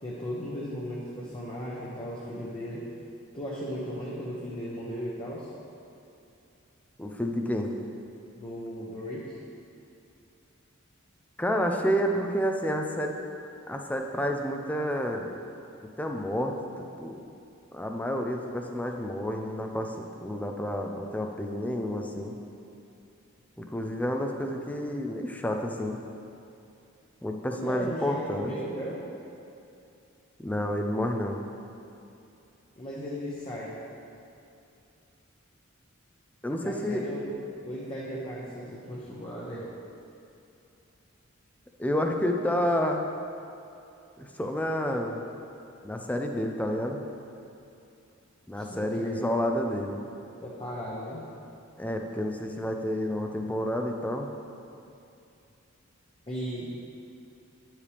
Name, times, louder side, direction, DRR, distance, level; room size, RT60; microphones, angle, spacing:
voice 1, 0.0-2.9 3.3-5.5 8.3-9.4 23.8-24.0 27.5-29.1 32.8-33.8 36.6-39.7 48.5-49.2 50.4-51.2 56.3-56.7, equal, 25° left, -6 dB, 0.9 m, -36 dB
voice 2, 7.0-7.7 11.4-13.2 13.7-15.3 16.0-16.5 17.0-17.2 17.7-22.3 23.6-26.0 27.2-28.5 30.4-31.4 36.4-37.1 41.8-43.1 44.2-45.2 45.8-47.0 48.5-50.0 51.8-54.3, equal, 5° left, 3 dB, 0.5 m, -29 dB
9.7 x 7.3 x 3.4 m, 2.7 s
head